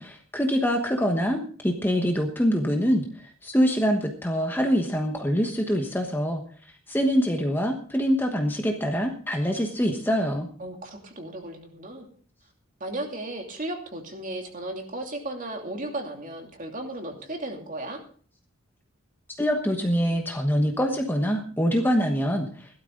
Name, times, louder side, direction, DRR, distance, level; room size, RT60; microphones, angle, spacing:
voice 1, 0.0-6.4 6.9-10.5 19.4-22.7, equal, 10° left, 3 dB, 1.2 m, -24 dB
voice 2, 10.6-12.1 12.8-18.0, right 1 dB, 35° right, 3 dB, 2.7 m, -35 dB
16.5 x 12.5 x 3.9 m, 0.43 s
head